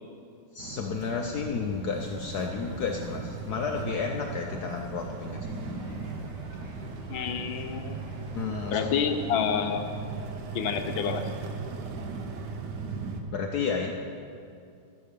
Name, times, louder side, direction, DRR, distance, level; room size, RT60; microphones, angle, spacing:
voice 1, 0.5-5.5 8.4-8.9 13.3-13.9, left 5 dB, 65° left, 2 dB, 1.1 m, -32 dB
sound 1, 0.6-13.2, right 4 dB, 60° right, 1.5 m, -37 dB
sound 2, 1.9-8.9, equal, 30° right, 3.7 m, -49 dB
voice 2, 7.1-8.0 8.7-9.9 10.5-11.3, left 7 dB, 80° left, 7 dB, 1.6 m, -28 dB
13.0 x 9.6 x 6.7 m, 2.5 s
omnidirectional pair, 2.2 m